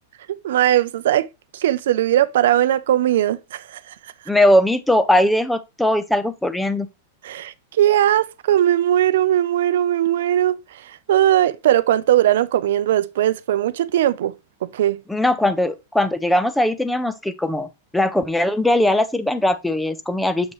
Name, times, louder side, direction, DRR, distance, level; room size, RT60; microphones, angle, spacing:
voice 1, 0.4-1.3 1.5-3.8 7.2-10.6 10.9-14.3 14.6-15.0, right 12 dB, 65° right, 0.5 m, -19 dB
voice 2, 4.3-6.9 15.1-20.5, left 1 dB, 5° left, 0.4 m, -20 dB
6.7 x 5.4 x 3.1 m
supercardioid pair, 175°, 0 cm